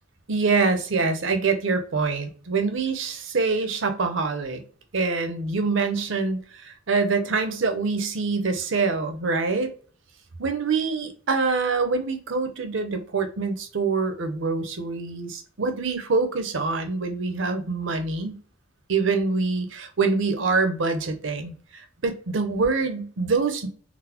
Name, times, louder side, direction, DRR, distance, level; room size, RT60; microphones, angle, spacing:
voice 1, 0.3-4.6 4.9-9.7 10.4-18.4 18.9-23.7, right 4 dB, 60° right, 0.6 m, -25 dB
3.9 x 2.0 x 2.8 m
head